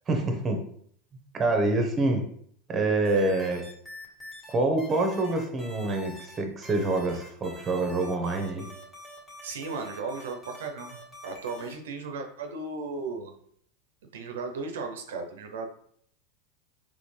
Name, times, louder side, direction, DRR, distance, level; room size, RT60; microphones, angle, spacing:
voice 1, 0.1-0.6 1.3-2.2 2.7-3.6 4.5-8.7, right 2 dB, 25° right, 4 dB, 1.0 m, -26 dB
sound 1, 3.0-4.5 4.8-6.4 6.6-11.7, left 1 dB, 10° left, 1.7 m, -46 dB
voice 2, 9.4-13.3 14.1-15.7, right 4 dB, 85° right, 5 dB, 0.6 m, -36 dB
4.1 x 3.3 x 3.3 m, 0.64 s
hypercardioid pair, 115°, 0 cm